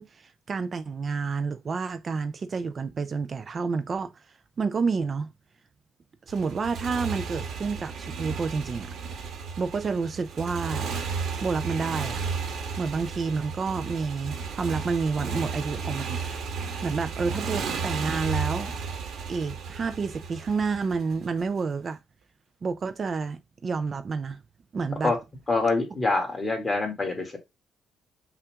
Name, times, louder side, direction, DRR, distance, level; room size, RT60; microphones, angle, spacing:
voice 1, 0.0-5.3 6.3-8.9 9.6-10.9 11.4-12.2 12.8-16.2 16.8-18.7 19.3-22.0 22.6-24.4 24.7-25.1, right 4 dB, 40° right, 0.4 m, -29 dB
Motorcycle, 6.3-21.4, right 5 dB, 70° right, 1.2 m, -33 dB
voice 2, 25.5-27.4, left 3 dB, 25° left, 2.0 m, -25 dB
5.6 x 2.5 x 3.5 m
cardioid pair, 90°, 0 cm